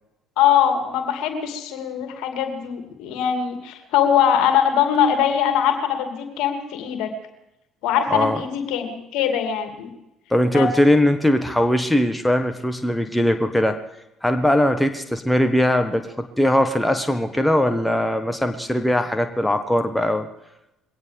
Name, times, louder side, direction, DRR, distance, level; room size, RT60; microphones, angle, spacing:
voice 1, 0.4-7.1 7.8-9.9 10.4-10.7, left 9 dB, 65° left, 5 dB, 2.5 m, -22 dB
voice 2, 10.3-13.8 14.2-20.3, left 1 dB, 5° left, 7 dB, 1.5 m, -20 dB
22.5 x 17.5 x 3.5 m, 0.90 s
figure-of-eight pair, 55°, 0 cm